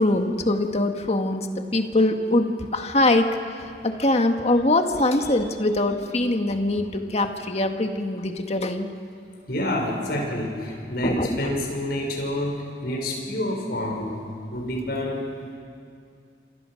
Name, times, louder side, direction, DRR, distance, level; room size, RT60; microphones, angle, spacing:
voice 1, 0.0-8.9 11.0-11.5, left 2 dB, 35° left, 5 dB, 1.7 m, -23 dB
voice 2, 9.5-12.6 12.8-14.1 14.5-15.2, left 1 dB, 60° left, 0 dB, 6.1 m, -28 dB
29.0 x 26.5 x 6.5 m, 2.4 s
head